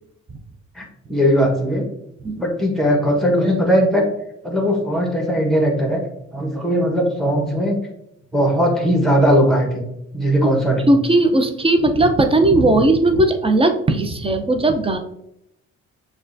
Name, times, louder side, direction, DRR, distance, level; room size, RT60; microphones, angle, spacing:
voice 1, 0.7-1.8 2.4-4.0 4.4-6.0 6.3-7.8 8.3-9.8 10.1-10.9, equal, ahead, 0 dB, 1.2 m, -18 dB
voice 2, 10.9-15.0, right 2 dB, 20° right, 6 dB, 0.5 m, -17 dB
6.4 x 2.5 x 2.6 m, 0.80 s
cardioid pair, 90°, 30 cm